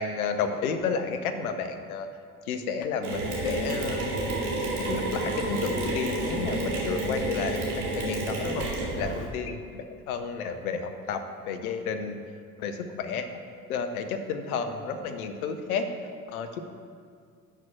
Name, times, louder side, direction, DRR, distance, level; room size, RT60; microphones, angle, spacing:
voice 1, 0.0-2.1 2.4-4.2 4.5-8.7 9.0-12.2 12.6-13.3 13.7-15.9 16.3-16.6, left 5 dB, 80° left, 7 dB, 0.8 m, -31 dB
Mechanisms, 3.0-9.3, right 2 dB, 70° right, 2.1 m, -30 dB
6.7 x 6.0 x 7.3 m, 2.2 s
figure-of-eight pair, 50°, 43 cm